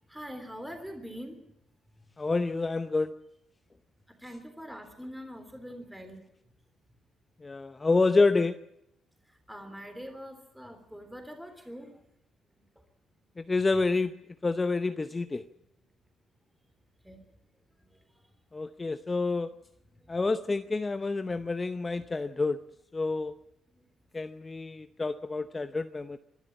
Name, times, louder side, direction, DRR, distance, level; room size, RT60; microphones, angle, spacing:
voice 1, 0.1-1.5 4.1-6.2 9.3-12.0 12.5-12.6 17.0-17.2 17.9-18.0 19.9-20.2 23.7-23.8, equal, 5° right, 6 dB, 3.5 m, -44 dB
voice 2, 2.2-3.1 7.4-8.5 13.4-14.1 14.4-15.4 18.5-19.5 20.1-22.6 22.9-23.3 24.1-26.2, left 3 dB, 25° left, 10 dB, 0.7 m, -28 dB
25.0 x 12.0 x 8.7 m, 0.82 s
cardioid pair, 90°, 0 cm